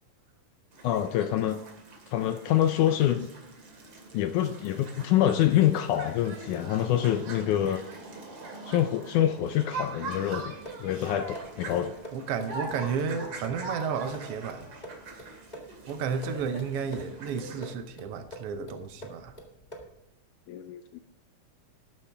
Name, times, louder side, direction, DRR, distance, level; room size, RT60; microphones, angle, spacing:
sound 1, 0.7-17.7, right 3 dB, 40° right, 3.0 m, -43 dB
voice 1, 0.8-1.6 2.1-3.3 4.1-7.8 8.7-12.0 20.5-21.0, left 11 dB, 80° left, 9 dB, 1.9 m, -26 dB
sound 2, 10.3-20.0, right 1 dB, 20° left, 1.1 m, -47 dB
voice 2, 12.1-14.7 15.2-15.3 15.9-19.3, right 6 dB, 90° right, 7 dB, 1.3 m, -32 dB
13.0 x 11.0 x 3.4 m, 0.91 s
omnidirectional pair, 3.9 m